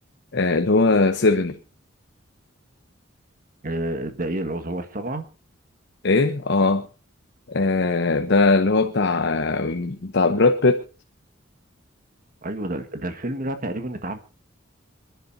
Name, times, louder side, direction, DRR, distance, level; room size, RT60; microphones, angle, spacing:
voice 1, 0.3-1.6 6.0-6.9 7.5-10.8, left 3 dB, 60° left, 0.9 m, -20 dB
voice 2, 3.6-5.3 12.4-14.2, right 1 dB, 45° right, 1.6 m, -29 dB
27.0 x 10.5 x 2.7 m
head